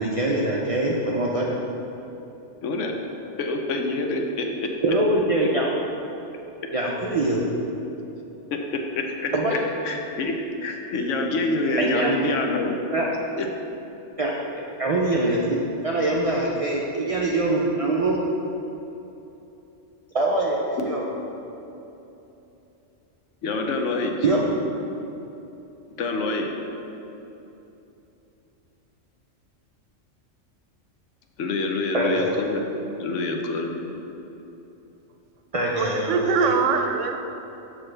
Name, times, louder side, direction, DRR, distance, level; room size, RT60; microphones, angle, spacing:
voice 1, 0.0-1.6 4.8-5.7 6.7-7.4 9.3-9.6 11.8-12.1 12.9-13.1 14.2-14.3 14.8-15.6 15.8-18.2 20.1-21.0 24.2-24.5 31.9-32.3 35.5-36.5, right 2 dB, 55° right, -2 dB, 0.4 m, -23 dB
voice 2, 2.6-3.0 3.4-4.7 8.5-8.6 9.0-9.6 9.8-10.3 10.6-12.7 13.4-13.5 20.8-20.9 23.4-24.1 26.0-26.5 31.4-32.6 33.0-33.7, left 3 dB, 80° left, 2 dB, 1.0 m, -26 dB
voice 3, 35.8-37.3, right 5 dB, 80° right, 5 dB, 0.9 m, -23 dB
6.2 x 6.1 x 3.3 m, 3.0 s
omnidirectional pair, 1.3 m